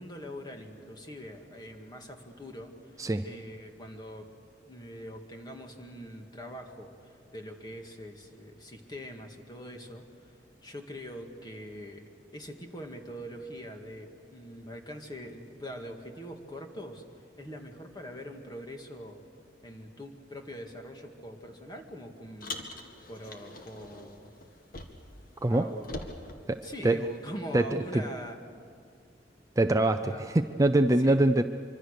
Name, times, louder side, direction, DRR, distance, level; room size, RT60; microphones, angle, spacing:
voice 1, 0.0-2.7 3.2-4.3 4.7-10.0 10.6-17.0 17.4-19.2 19.6-22.8 23.1-24.3 25.5-26.3 26.6-28.4 30.1-30.2 31.0-31.2, equal, 25° left, 3 dB, 2.1 m, -43 dB
Car, 22.4-25.2 25.5-27.3, left 2 dB, 55° left, 2.1 m, -43 dB
voice 2, 26.5-27.0 27.5-28.0 29.6-31.4, right 1 dB, 20° right, 8 dB, 0.5 m, -24 dB
25.0 x 24.5 x 6.7 m, 2.3 s
head